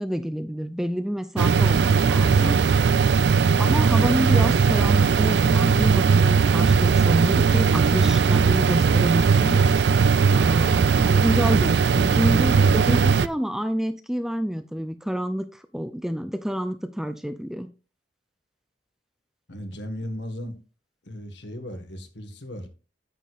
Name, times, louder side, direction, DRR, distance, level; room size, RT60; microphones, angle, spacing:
voice 1, 0.0-2.6 3.4-9.6 10.3-17.7, equal, ahead, 10 dB, 0.5 m, -28 dB
sound 1, 1.4-13.3, right 5 dB, 65° right, 0.4 m, -19 dB
voice 2, 19.5-20.5 21.0-22.7, equal, 75° left, 6 dB, 1.7 m, -36 dB
9.2 x 8.3 x 2.5 m, 0.33 s
head